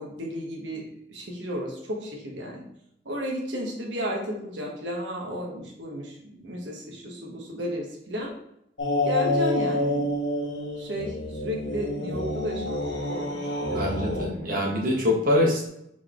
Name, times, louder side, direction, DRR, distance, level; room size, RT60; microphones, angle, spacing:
voice 1, 0.0-2.6 3.0-8.3 9.0-10.0 10.8-12.8 13.1-13.2 13.7-14.6, equal, 80° right, -1 dB, 1.3 m, -33 dB
sound 1, 8.8-14.3, left 1 dB, 80° left, 1.2 m, -28 dB
voice 2, 13.7-15.7, left 1 dB, 50° right, -2 dB, 1.2 m, -24 dB
4.5 x 3.9 x 3.0 m, 0.77 s
head